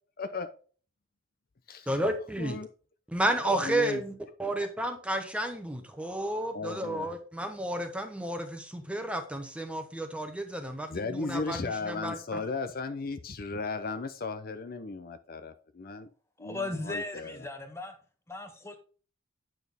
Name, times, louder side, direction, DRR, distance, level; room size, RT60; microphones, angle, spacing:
voice 1, 0.2-0.5 1.7-1.9 2.4-2.7 3.4-4.0 6.5-7.1 10.9-16.1 16.4-17.4, left 3 dB, 45° left, 0.6 m, -36 dB
voice 2, 1.9-2.6 3.1-12.4, right 1 dB, 5° right, 1.0 m, -32 dB
voice 3, 16.4-17.9 18.3-18.8, left 2 dB, 15° left, 1.4 m, -37 dB
9.1 x 6.2 x 3.4 m
head